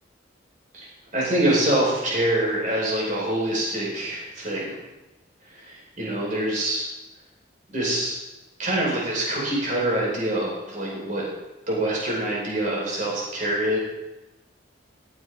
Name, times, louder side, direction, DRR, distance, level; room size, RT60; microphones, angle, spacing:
voice 1, 1.1-4.7 5.6-6.8 7.7-8.1 8.6-11.2 11.7-13.8, right 1 dB, 40° right, -4 dB, 4.8 m, -25 dB
15.5 x 7.1 x 4.9 m, 1.0 s
head